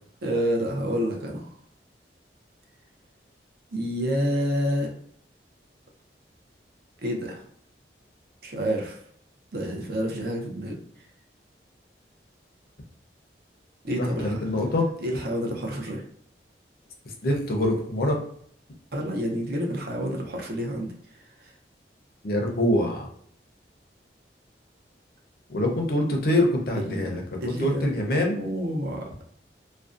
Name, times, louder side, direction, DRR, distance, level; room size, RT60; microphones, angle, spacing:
voice 1, 0.2-1.5 3.7-4.9 7.0-7.4 8.4-9.0 9.5-10.8 13.8-14.4 15.0-16.0 18.9-20.9 21.4-21.5 26.8-27.1 27.4-29.1, equal, 60° right, 0 dB, 0.5 m, -28 dB
voice 2, 14.0-14.9 17.0-18.2 22.2-23.1 25.5-28.4, left 1 dB, 55° left, 1 dB, 0.5 m, -25 dB
2.5 x 2.1 x 2.4 m, 0.63 s
head